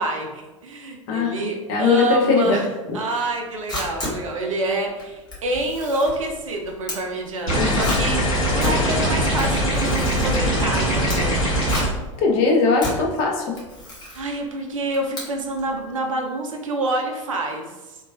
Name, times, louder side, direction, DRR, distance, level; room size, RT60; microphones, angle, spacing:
voice 1, 0.0-2.7 2.9-11.4 14.1-18.0, right 2 dB, 75° right, 2 dB, 0.4 m, -27 dB
voice 2, 1.7-2.6 2.9-3.0 7.5-7.9 12.2-13.5, left 4 dB, 50° left, 1 dB, 0.6 m, -20 dB
Camera, 3.3-15.7, left 1 dB, 25° left, 1.2 m, -33 dB
sound 1, 7.5-11.9, equal, 75° left, 1.4 m, -21 dB
3.0 x 2.3 x 2.4 m, 1.2 s
figure-of-eight pair, 80°, 17 cm